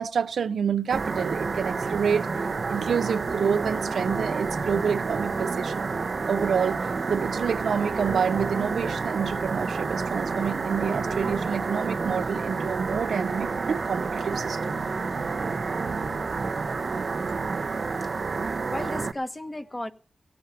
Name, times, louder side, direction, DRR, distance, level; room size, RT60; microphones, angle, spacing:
voice 1, 0.0-2.3 2.7-5.9 6.3-14.7, right 6 dB, 85° right, 0.6 m, -28 dB
sound 1, 0.9-19.1, right 4 dB, 60° right, 0.8 m, -29 dB
sound 2, 7.8-18.2, left 2 dB, 90° left, 4.2 m, -49 dB
voice 2, 18.0-19.9, left 1 dB, 20° left, 1.3 m, -35 dB
16.5 x 8.6 x 7.2 m
cardioid pair, 60°, 0 cm